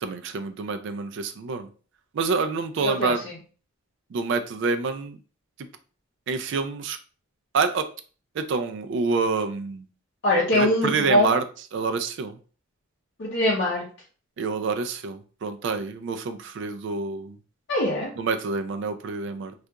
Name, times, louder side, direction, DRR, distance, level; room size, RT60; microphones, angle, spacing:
voice 1, 0.0-1.7 2.1-3.2 4.1-5.2 6.3-7.0 7.5-7.8 8.4-9.8 10.5-11.4 11.7-12.4 14.4-17.4 18.2-19.5, right 4 dB, 55° right, 8 dB, 0.3 m, -27 dB
voice 2, 2.8-3.1 10.2-11.3 13.2-13.8 17.7-18.1, left 1 dB, 55° left, -5 dB, 0.6 m, -22 dB
2.8 x 2.4 x 2.2 m, 0.39 s
head